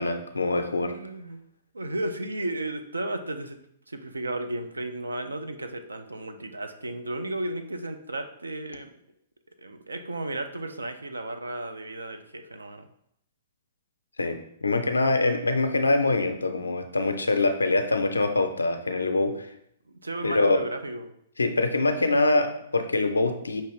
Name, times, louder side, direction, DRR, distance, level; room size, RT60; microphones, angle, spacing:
voice 1, 0.0-0.9 14.2-19.5 20.2-20.6 21.4-23.6, left 2 dB, 85° left, 7 dB, 0.5 m, -24 dB
voice 2, 0.7-1.4 1.7-3.6 3.9-8.9 9.5-12.9 19.9-21.1, right 1 dB, 85° right, 7 dB, 0.4 m, -34 dB
5.5 x 2.8 x 3.1 m, 0.74 s
figure-of-eight pair, 115°, 0 cm